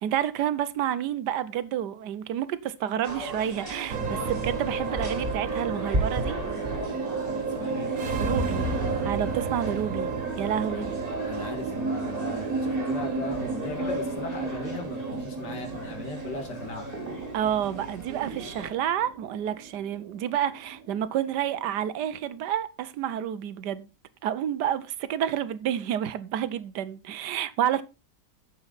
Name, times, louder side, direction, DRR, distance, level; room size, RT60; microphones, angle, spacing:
voice 1, 0.0-6.4 8.2-8.7 9.0-10.1 10.4-10.9 17.3-23.9 24.2-27.8, right 10 dB, 80° right, 1.3 m, -29 dB
sound 1, 3.0-18.7, right 1 dB, 20° right, 3.2 m, -36 dB
sound 2, 3.9-22.4, right 4 dB, 55° right, 1.7 m, -32 dB
voice 2, 7.2-7.9 10.5-10.9 11.3-16.9, left 3 dB, 80° left, 2.8 m, -38 dB
9.7 x 7.2 x 4.0 m
omnidirectional pair, 1.8 m